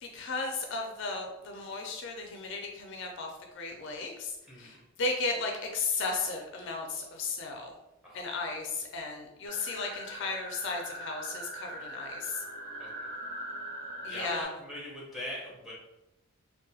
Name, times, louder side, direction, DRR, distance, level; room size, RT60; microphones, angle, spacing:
voice 1, 0.0-3.3 3.5-4.3 4.6-7.7 8.1-12.4 14.0-14.5, left 3 dB, 55° left, 2 dB, 0.4 m, -35 dB
voice 2, 8.0-8.5 12.8-13.1 14.1-15.7, equal, ahead, -5 dB, 0.7 m, -42 dB
sound 1, 9.5-14.4, right 1 dB, 40° right, 0.5 m, -41 dB
2.7 x 2.2 x 2.7 m, 0.91 s
head